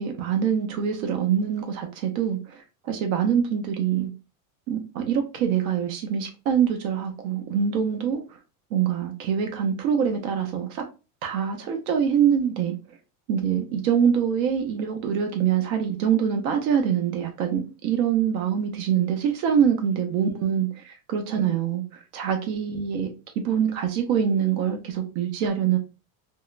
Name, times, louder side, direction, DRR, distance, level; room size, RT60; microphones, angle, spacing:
voice 1, 0.0-2.6 2.8-4.1 4.7-8.2 8.7-10.8 11.2-12.8 13.3-25.8, right 8 dB, 70° right, 0.8 m, -24 dB
3.6 x 2.1 x 2.4 m
supercardioid pair, 130°, 42 cm